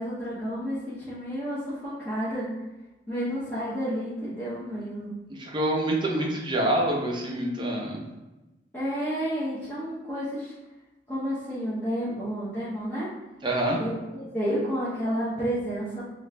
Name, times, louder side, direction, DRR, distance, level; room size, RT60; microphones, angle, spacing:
voice 1, 0.0-2.5 3.1-5.1 8.7-10.5 11.1-13.1 13.8-16.0, equal, 10° left, -11 dB, 0.7 m, -30 dB
voice 2, 5.3-8.0 13.4-13.8, right 1 dB, 25° right, -2 dB, 0.6 m, -26 dB
3.0 x 2.4 x 3.2 m, 1.1 s
head